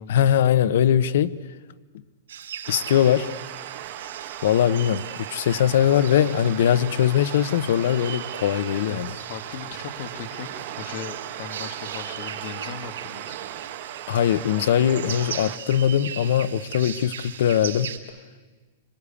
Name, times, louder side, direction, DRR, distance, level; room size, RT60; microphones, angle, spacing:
voice 1, 0.1-1.4 2.7-3.4 4.4-5.0 5.3-9.1 14.1-17.9, left 10 dB, 65° left, 1.0 m, -21 dB
sound 1, 2.3-18.0, right 9 dB, 90° right, 3.6 m, -39 dB
sound 2, 2.6-15.6, right 13 dB, 40° right, 1.8 m, -37 dB
voice 2, 8.9-13.4, left 7 dB, 45° left, 2.1 m, -38 dB
26.0 x 25.0 x 8.6 m
supercardioid pair, 165°, 0 cm